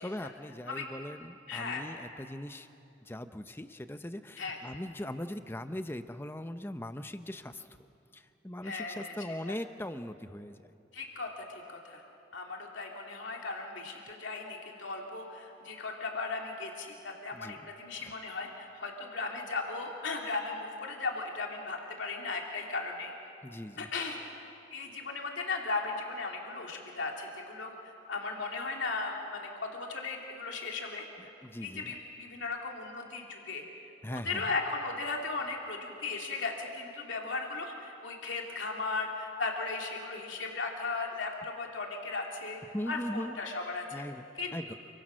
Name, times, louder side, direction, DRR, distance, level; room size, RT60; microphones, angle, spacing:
voice 1, 0.0-2.7 3.0-7.7 8.1-10.6 17.3-17.6 18.0-18.1 23.4-23.9 31.4-31.9 34.0-34.5 42.7-43.3 43.9-44.2 44.5-44.7, left 1 dB, 10° left, 10 dB, 0.7 m, -40 dB
voice 2, 1.5-1.9 4.4-4.6 8.6-9.1 9.4-9.6 10.9-12.0 12.3-23.1 23.8-24.2 24.7-31.1 31.6-33.6 34.1-42.6 42.9-44.0 44.3-44.8, left 3 dB, 70° left, 0 dB, 2.7 m, -37 dB
28.0 x 24.0 x 6.3 m, 2.8 s
head